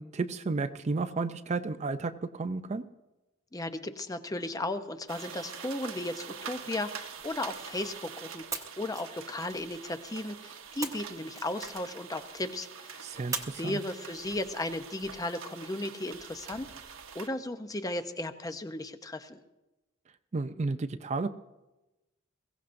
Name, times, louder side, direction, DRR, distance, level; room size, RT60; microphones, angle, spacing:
voice 1, 0.0-2.8 13.0-13.8 20.3-21.3, right 3 dB, 35° right, 11 dB, 0.4 m, -32 dB
voice 2, 3.5-13.2 13.5-16.7 17.1-19.4, left 1 dB, 20° left, 9 dB, 0.6 m, -35 dB
sound 1, 5.1-17.3, right 7 dB, 80° right, 1.1 m, -45 dB
sound 2, 5.7-8.0 8.5-10.1 10.8-12.2 13.3-14.7, right 4 dB, 15° right, 1.1 m, -43 dB
22.0 x 16.0 x 2.6 m, 1.0 s
head